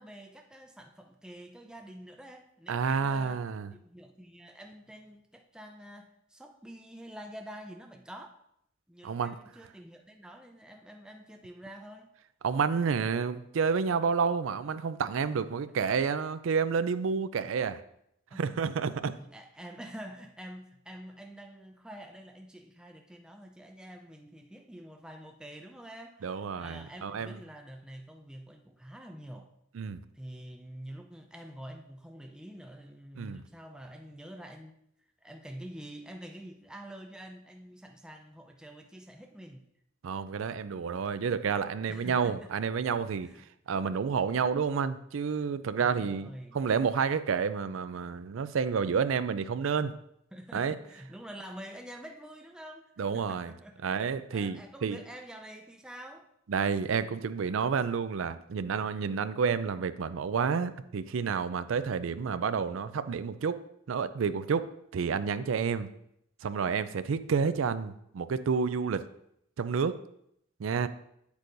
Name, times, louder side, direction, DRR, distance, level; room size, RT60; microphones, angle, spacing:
voice 1, 0.0-3.4 3.7-8.4 8.9-12.1 15.7-15.8 18.3-18.6 19.1-29.5 30.1-34.8 35.2-39.6 41.9-42.5 43.1-43.5 45.8-46.6 50.3-54.0 54.3-56.3, equal, 5° right, 3 dB, 0.4 m, -47 dB
voice 2, 2.7-3.7 9.0-9.3 12.4-17.8 18.4-19.1 26.2-27.4 29.7-30.0 33.2-33.4 40.0-43.3 43.7-46.3 46.5-49.9 50.5-50.8 53.0-53.5 53.8-55.0 56.5-63.6 63.9-64.6 64.9-65.9 66.4-69.0 69.6-69.9 70.6-70.9, right 6 dB, 70° right, 12 dB, 0.4 m, -29 dB
8.3 x 8.2 x 2.6 m, 0.74 s
head